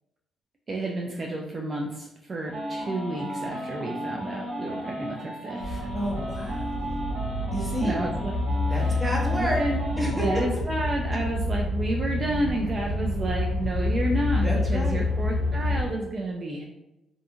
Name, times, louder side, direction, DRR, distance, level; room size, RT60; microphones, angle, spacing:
voice 1, 0.7-5.9 7.8-8.4 8.7-9.0 9.3-9.8 10.2-16.6, right 1 dB, 40° right, 0 dB, 0.3 m, -31 dB
sound 1, 2.5-10.4, right 1 dB, 65° right, 0.9 m, -34 dB
sound 2, 5.6-15.9, left 2 dB, 75° left, 0.5 m, -28 dB
voice 2, 5.9-6.8 7.5-8.0 8.6-9.6 10.0-10.6 14.3-15.0, equal, 10° right, -2 dB, 0.8 m, -30 dB
2.4 x 2.4 x 2.7 m, 0.95 s
cardioid pair, 85°, 0 cm